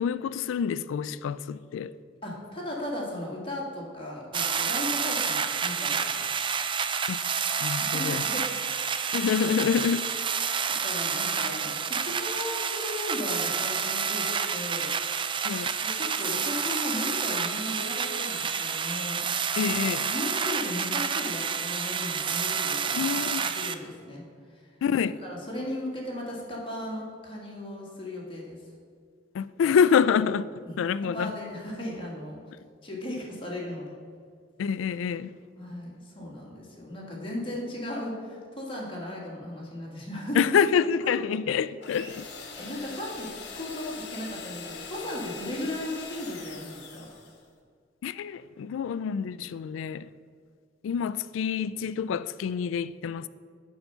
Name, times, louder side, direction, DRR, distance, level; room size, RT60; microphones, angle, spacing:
voice 1, 0.0-1.9 7.1-7.2 7.6-8.2 9.1-10.1 15.4-15.7 19.6-20.0 23.0-23.4 24.8-25.2 29.3-30.5 30.8-31.3 34.6-35.3 40.4-42.3 48.0-50.1 50.8-53.3, left 7 dB, 80° left, 0.3 m, -26 dB
voice 2, 2.2-6.0 6.3-6.4 7.8-8.5 8.8-9.0 10.7-14.9 15.8-19.2 19.6-24.2 24.5-24.7 25.2-28.6 31.0-32.4 32.8-33.9 35.6-40.5 41.0-41.1 42.5-47.1, left 1 dB, 30° left, 2.0 m, -36 dB
sound 1, 4.3-23.7, right 6 dB, 25° right, 0.4 m, -29 dB
sound 2, 41.8-47.4, left 4 dB, 60° left, 1.2 m, -42 dB
6.9 x 5.6 x 6.8 m
head